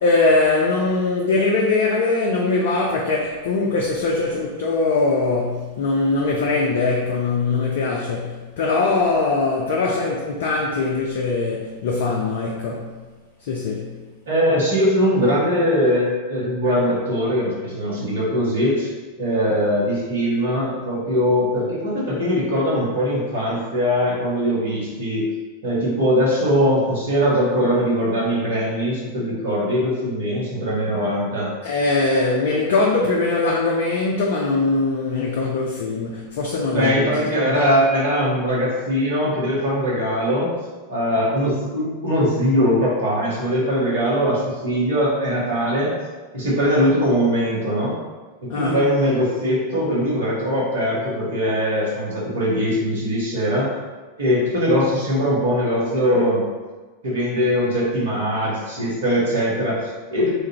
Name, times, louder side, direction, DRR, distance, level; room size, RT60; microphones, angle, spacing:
voice 1, 0.0-12.9 13.4-13.9 31.6-37.1 48.5-48.8, left 3 dB, 55° left, -1 dB, 0.3 m, -21 dB
voice 2, 14.3-18.9 19.2-25.2 25.6-31.5 36.7-40.5 40.9-45.9 46.3-47.9 48.4-53.7 54.2-56.4 57.0-60.3, equal, 65° right, -6 dB, 1.1 m, -21 dB
3.1 x 2.4 x 2.8 m, 1.3 s
figure-of-eight pair, 90°, 0 cm